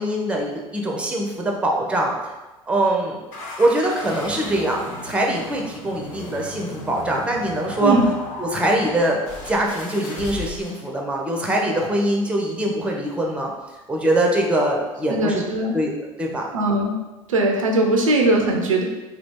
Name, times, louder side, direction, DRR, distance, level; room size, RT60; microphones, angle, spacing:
voice 1, 0.0-2.3 2.7-3.2 3.6-8.0 8.4-13.5 13.9-15.4 15.7-15.9 16.2-16.4, right 1 dB, 5° right, 0 dB, 0.6 m, -23 dB
Car Crash Edit Two, 3.3-10.9, left 2 dB, 50° left, 0.8 m, -36 dB
voice 2, 15.1-15.7 16.5-16.9 17.3-18.8, right 2 dB, 75° right, 2 dB, 0.5 m, -19 dB
2.9 x 2.4 x 3.5 m, 1.1 s
figure-of-eight pair, 70°, 17 cm